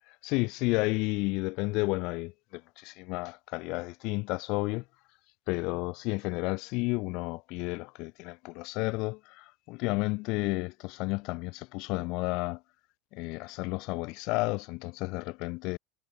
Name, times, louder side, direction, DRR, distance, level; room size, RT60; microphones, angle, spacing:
voice 1, 0.1-4.8 5.5-12.6 13.1-15.8, left 25 dB, 55° left, 0.7 m, -32 dB
supercardioid pair, 145°, 0 cm